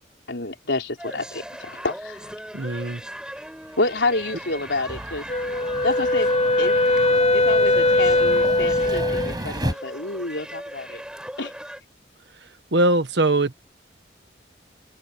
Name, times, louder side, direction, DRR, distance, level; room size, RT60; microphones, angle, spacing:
voice 1, 0.3-2.3 3.8-5.2 5.8-6.3 6.6-6.8 7.3-11.0 11.4-11.5, left 2 dB, 80° left, 4.1 m, -28 dB
sound 1, 1.0-11.8, equal, 5° right, 5.2 m, -38 dB
voice 2, 2.5-3.0 12.4-13.5, right 2 dB, 75° right, 1.4 m, -22 dB
sound 2, 3.5-9.7, right 1 dB, 20° right, 5.9 m, -35 dB
Wind instrument woodwind instrument, 5.3-9.3, left 2 dB, 40° left, 1.4 m, -20 dB
head